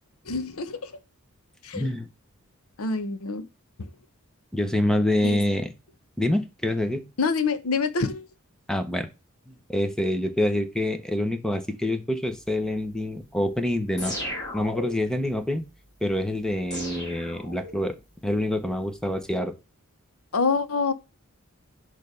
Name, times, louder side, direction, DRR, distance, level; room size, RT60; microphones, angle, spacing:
voice 1, 0.3-0.9 1.6-1.9 2.8-3.5 3.8-3.9 5.2-5.4 7.2-8.3 20.3-20.9, left 4 dB, 75° left, 0.8 m, -26 dB
voice 2, 1.7-2.1 4.5-5.7 6.2-7.1 8.7-9.1 9.7-14.2 14.5-15.6 16.0-17.9 18.2-19.5, left 1 dB, 5° left, 0.8 m, -26 dB
sound 1, 14.0-15.2 16.7-18.0, left 1 dB, 20° left, 2.0 m, -35 dB
6.5 x 3.2 x 5.2 m
head